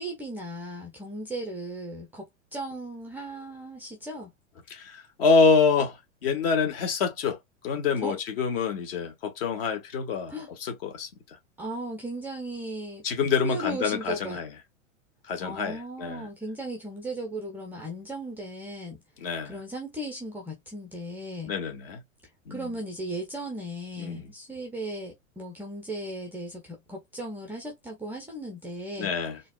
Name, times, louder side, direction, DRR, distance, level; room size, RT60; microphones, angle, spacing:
voice 1, 0.0-2.2 2.5-4.3 8.0-8.1 10.3-10.5 11.6-13.0 13.4-14.4 15.4-19.0 19.5-21.5 22.5-29.1, right 1 dB, 5° right, 0.4 m, -36 dB
voice 2, 4.7-7.4 7.6-10.3 10.6-11.1 13.0-14.5 15.3-16.3 19.2-19.6 21.5-22.0 22.5-22.7 24.0-24.3 29.0-29.4, left 5 dB, 45° left, 1.1 m, -26 dB
4.0 x 2.5 x 2.2 m
figure-of-eight pair, 100°, 40 cm